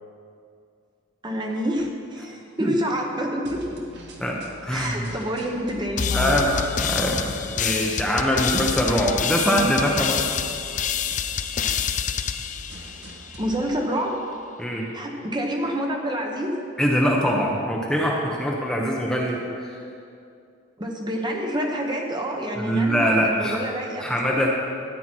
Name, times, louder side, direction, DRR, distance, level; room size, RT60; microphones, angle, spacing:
voice 1, 1.2-3.8 4.7-6.4 13.4-14.2 14.9-16.7 20.8-24.4, equal, 20° right, 1 dB, 1.1 m, -28 dB
sound 1, 3.4-13.7, equal, 55° right, 1.4 m, -44 dB
voice 2, 4.2-5.1 6.1-10.2 14.6-14.9 16.8-19.8 22.6-23.6 24.0-24.5, equal, 5° left, -2 dB, 0.9 m, -23 dB
sound 2, 6.0-13.5, left 7 dB, 35° left, 0.4 m, -27 dB
14.0 x 9.1 x 4.5 m, 2.4 s
head